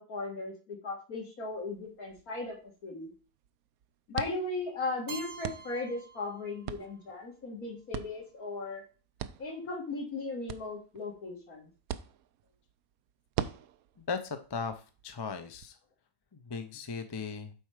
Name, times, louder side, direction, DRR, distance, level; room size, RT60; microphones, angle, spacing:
voice 1, 0.0-3.1 4.1-8.8 9.4-11.7, left 3 dB, 70° left, 1 dB, 2.5 m, -37 dB
sound 1, 1.5-15.7, right 10 dB, 75° right, 1.0 m, -44 dB
Keyboard (musical), 5.1-7.0, right 6 dB, 55° right, 1.1 m, -47 dB
voice 2, 14.0-15.8 16.3-17.5, left 5 dB, 25° left, 8 dB, 0.5 m, -37 dB
7.8 x 4.5 x 4.9 m, 0.36 s
omnidirectional pair, 1.6 m